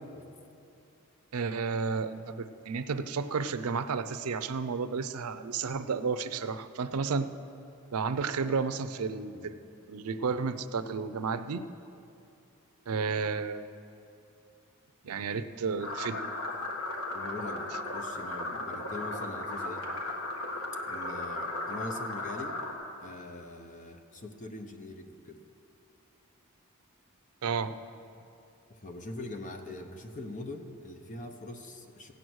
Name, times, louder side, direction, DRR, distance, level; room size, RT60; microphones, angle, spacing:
voice 1, 1.3-7.3 7.9-9.6 9.9-11.7 12.9-13.7 15.0-16.3 27.4-27.8, right 5 dB, 85° right, 11 dB, 0.5 m, -32 dB
sound 1, 15.8-22.7, left 2 dB, 75° left, 1.7 m, -36 dB
voice 2, 17.1-19.8 20.9-22.6 23.0-25.4 28.7-32.1, left 2 dB, 35° left, 5 dB, 0.9 m, -42 dB
15.5 x 9.3 x 6.3 m, 2.6 s
head